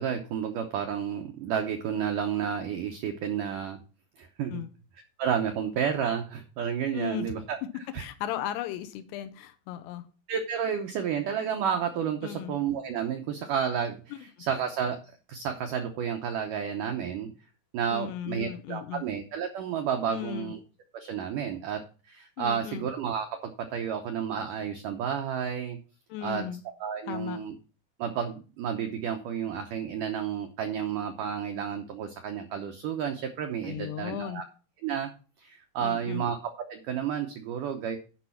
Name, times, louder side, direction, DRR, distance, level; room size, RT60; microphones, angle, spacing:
voice 1, 0.0-3.8 4.2-4.6 5.2-8.1 10.3-15.0 15.3-17.3 17.7-20.6 20.9-25.8 26.2-26.5 26.8-27.5 28.0-34.4 34.8-35.1 35.4-38.0, right 8 dB, 80° right, 5 dB, 1.9 m, -31 dB
voice 2, 6.9-7.3 8.0-10.1 12.2-12.5 17.9-19.0 20.1-20.5 22.4-22.8 26.1-26.6 27.1-27.4 33.6-34.4 35.8-36.2, left 11 dB, 80° left, 10 dB, 2.7 m, -36 dB
10.5 x 5.5 x 5.8 m, 0.35 s
omnidirectional pair, 5.0 m